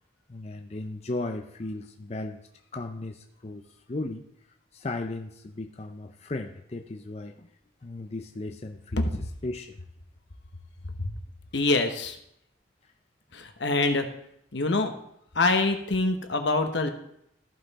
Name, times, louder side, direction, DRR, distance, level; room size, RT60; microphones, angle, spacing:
voice 1, 0.3-2.4 2.7-3.6 3.9-4.3 4.7-7.5 7.8-9.1 9.4-9.8, left 2 dB, 35° left, 4 dB, 0.5 m, -36 dB
voice 2, 11.5-12.2 13.3-14.1 14.5-14.9 15.3-16.9, left 3 dB, 75° left, 6 dB, 1.1 m, -25 dB
14.0 x 5.6 x 4.1 m, 0.76 s
head